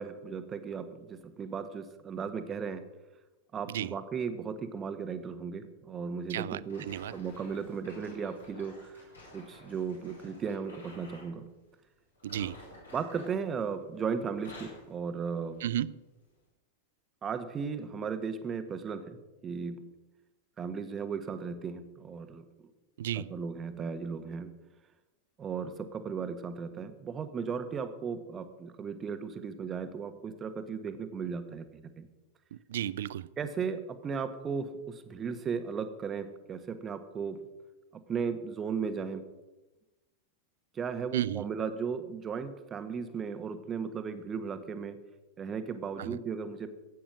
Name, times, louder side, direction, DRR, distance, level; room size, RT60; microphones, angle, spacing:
voice 1, 0.0-2.8 3.5-6.8 7.1-9.0 9.3-11.4 12.9-15.6 17.2-19.2 19.4-19.8 20.6-22.4 23.2-24.5 25.4-32.1 33.4-37.4 37.9-39.2 40.7-45.0 45.4-46.7, right 6 dB, 25° right, 9 dB, 1.4 m, -36 dB
voice 2, 6.3-7.1 12.2-12.6 15.6-16.0 23.0-23.3 32.5-33.3 41.1-41.4 46.0-46.2, right 11 dB, 60° right, 20 dB, 0.4 m, -33 dB
sound 1, 6.7-11.3 12.2-14.0 14.3-14.9 15.5-15.7 16.4-16.5, left 1 dB, 75° left, 6.3 m, -52 dB
15.5 x 8.9 x 6.3 m, 1.1 s
figure-of-eight pair, 90°, 0 cm